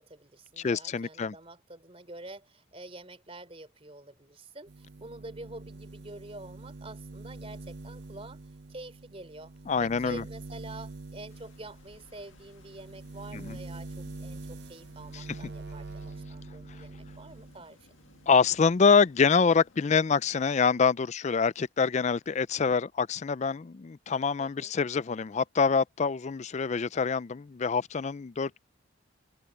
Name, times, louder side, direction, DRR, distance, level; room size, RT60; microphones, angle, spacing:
voice 1, 0.0-8.4 8.7-9.5 9.8-18.0 24.4-24.7, right 2 dB, 30° right, 3.6 m, -47 dB
voice 2, 0.6-1.3 9.7-10.2 13.3-13.6 15.1-15.2 18.3-28.6, left 5 dB, 35° left, 0.4 m, -25 dB
sound 1, 4.7-17.6 18.0-19.0, right 3 dB, 55° right, 0.7 m, -45 dB
sound 2, 11.3-20.6, left 2 dB, 70° left, 1.8 m, -60 dB
head